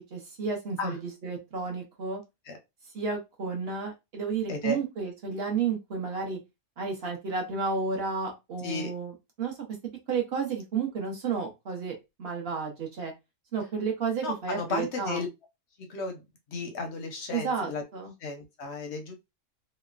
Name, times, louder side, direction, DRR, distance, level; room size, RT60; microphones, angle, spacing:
voice 1, 0.1-2.2 2.9-6.4 6.8-9.5 10.1-11.9 12.2-13.1 13.5-15.2 17.3-18.1, right 5 dB, 55° right, 2 dB, 0.8 m, -32 dB
voice 2, 4.5-4.8 8.6-8.9 14.2-15.3 15.9-16.2 16.5-17.8 18.2-19.1, left 3 dB, 60° left, 3 dB, 0.7 m, -33 dB
3.0 x 2.0 x 2.3 m, 0.23 s
omnidirectional pair, 1.6 m